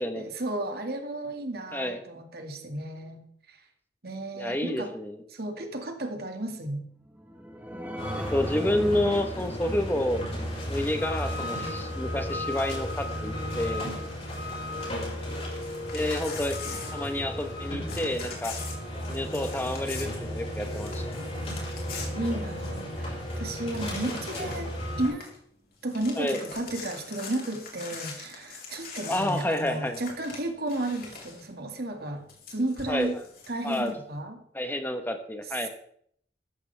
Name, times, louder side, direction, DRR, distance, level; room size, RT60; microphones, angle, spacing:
voice 1, 0.2-3.2 3.5-3.6 4.0-4.9 5.3-6.9 22.2-25.3 25.8-32.2 32.5-33.2 33.5-34.4 35.6-35.7, right 1 dB, 60° right, 4 dB, 2.1 m, -33 dB
voice 2, 4.4-5.2 8.2-10.2 10.7-13.9 15.9-16.6 16.9-18.6 19.1-21.2 24.3-24.5 26.2-26.4 29.1-30.0 32.9-33.1 33.6-33.9 34.5-35.7, left 1 dB, 10° left, 6 dB, 1.1 m, -29 dB
sound 1, 7.0-14.1 14.6-14.7 15.0-15.1, equal, 10° right, 1.3 m, -42 dB
sound 2, 8.0-25.1, equal, 35° left, 5.5 m, -34 dB
Crumpling crinkling / Tearing, 15.4-17.6 17.9-23.0 23.3-23.4 23.7-24.7 25.0-25.4 25.7-31.5 32.3-33.9, left 4 dB, 55° left, 3.9 m, -43 dB
13.5 x 13.5 x 3.5 m, 0.64 s
head